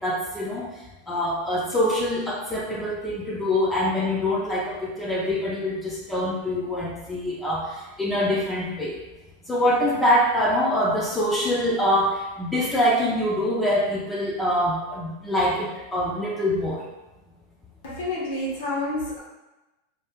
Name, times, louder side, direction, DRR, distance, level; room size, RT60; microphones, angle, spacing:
voice 1, 0.0-0.7 1.1-9.0 9.5-16.8, left 1 dB, 10° left, -4 dB, 0.4 m, -24 dB
voice 2, 17.8-19.2, left 1 dB, 75° left, -5 dB, 1.0 m, -29 dB
2.7 x 2.1 x 3.4 m, 1.1 s
supercardioid pair, 145°, 0 cm